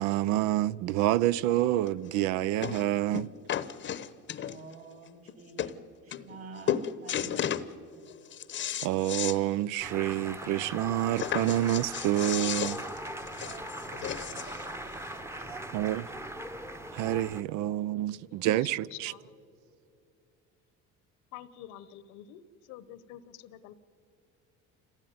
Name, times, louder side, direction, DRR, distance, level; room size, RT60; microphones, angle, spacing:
voice 1, 0.0-3.3 8.8-12.8 15.7-16.1 16.9-19.1, right 13 dB, 75° right, 0.6 m, -28 dB
sound 1, 1.9-2.0 2.6-2.9 3.1-4.7 5.3-5.4 5.6-5.7 6.1-6.4 6.7-7.7 8.1-9.4 9.8-9.9 10.2-10.3 11.2-14.6 15.4-15.5, left 9 dB, 40° left, 0.9 m, -33 dB
voice 2, 4.4-8.2 13.4-14.9 15.3-15.6, right 3 dB, 45° right, 3.5 m, -50 dB
sound 2, 9.8-17.4, right 1 dB, 10° right, 0.9 m, -40 dB
voice 3, 18.8-19.2 21.3-22.4 22.7-23.7, left 12 dB, 75° left, 1.1 m, -47 dB
26.0 x 16.5 x 9.5 m
cardioid pair, 115°, 30 cm